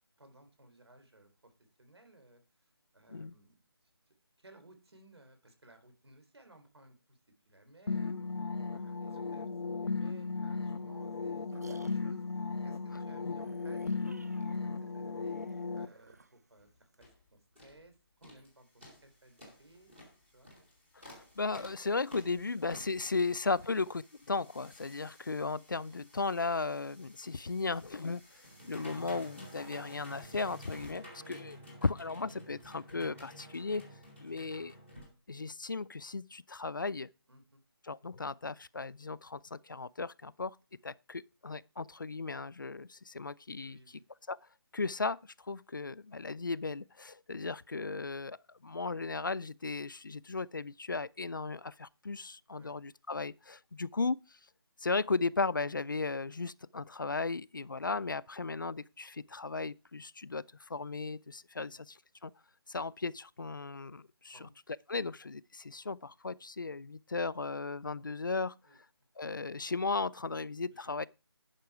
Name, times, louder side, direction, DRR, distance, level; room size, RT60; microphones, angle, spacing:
voice 1, 0.2-1.5 1.8-3.6 4.1-7.2 7.5-8.3 8.7-9.5 9.8-12.2 12.6-19.9 20.3-20.5 23.6-23.9 31.1-31.4 37.3-37.6 43.6-44.0 52.6-52.8 61.6-61.8 64.3-64.5 65.0-65.2 68.6-68.8 70.7-71.1, right 1 dB, 80° right, 3.5 m, -60 dB
sound 1, 7.9-15.9, left 4 dB, 90° left, 0.8 m, -36 dB
sound 2, 11.0-17.1, right 3 dB, 40° right, 0.7 m, -57 dB
sound 3, 16.6-16.7 17.0-17.2 17.6-17.8 18.2-18.5 18.8-35.1, equal, 5° right, 0.7 m, -53 dB
voice 2, 21.4-24.0 24.3-28.2 28.7-31.6 31.8-33.8 34.2-34.7 35.3-37.1 37.9-40.6 40.8-43.8 44.3-44.4 44.7-45.2 45.5-48.4 48.6-54.2 54.8-60.4 60.7-62.0 62.2-62.3 62.7-64.4 64.9-68.5 69.2-71.1, left 3 dB, 50° left, 0.4 m, -36 dB
10.5 x 5.8 x 4.7 m
figure-of-eight pair, 180°, 13 cm